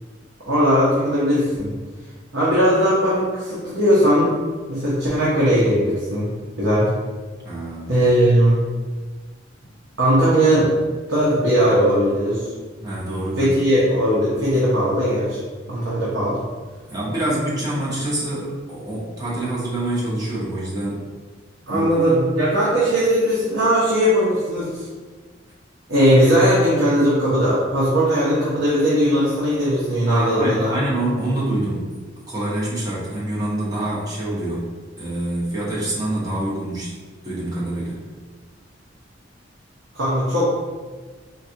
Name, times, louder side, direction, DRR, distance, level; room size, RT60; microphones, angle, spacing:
voice 1, 0.4-1.7 2.3-4.3 4.7-6.3 6.6-6.9 7.9-8.6 10.0-10.7 11.1-12.5 13.4-15.4 15.7-16.4 21.7-24.9 25.9-30.8 39.9-40.4, equal, 80° right, -9 dB, 0.8 m, -18 dB
voice 2, 7.4-7.9 12.8-13.5 16.9-21.1 21.7-21.9 30.1-31.9 32.3-34.6 35.0-36.9 37.2-38.0, right 1 dB, 20° right, -8 dB, 1.0 m, -26 dB
3.9 x 2.3 x 2.7 m, 1.4 s
head